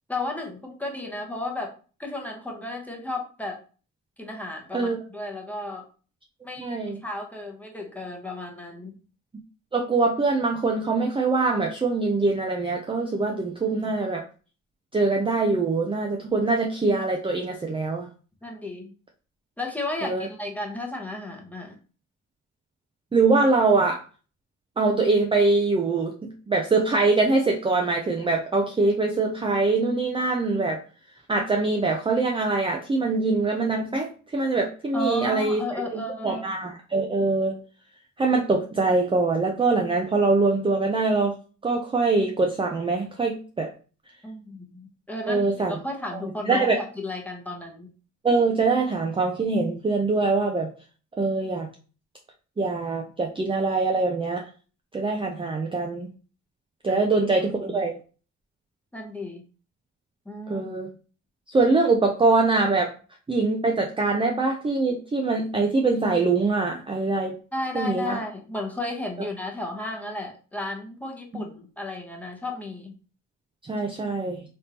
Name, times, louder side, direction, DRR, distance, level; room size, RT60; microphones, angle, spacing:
voice 1, 0.1-1.7 2.0-3.6 4.2-5.9 6.4-8.9 13.7-14.0 18.4-18.9 19.6-21.8 34.9-36.4 44.2-47.9 56.9-57.0 57.7-57.9 58.9-59.4 60.3-60.7 67.5-73.0, left 2 dB, 5° left, 0 dB, 0.9 m, -34 dB
voice 2, 6.6-7.0 9.7-14.2 14.9-18.1 20.0-20.3 23.1-24.0 24.8-30.8 31.3-37.6 38.2-41.3 41.6-43.7 45.3-45.8 46.1-46.8 48.2-50.7 51.2-51.7 52.6-54.4 54.9-56.1 56.8-57.9 60.5-60.9 61.5-62.9 63.3-67.4 67.7-68.2 71.3-71.4 73.7-74.4, right 3 dB, 20° right, 1 dB, 0.5 m, -23 dB
3.5 x 2.6 x 2.9 m, 0.37 s
cardioid pair, 90°, 30 cm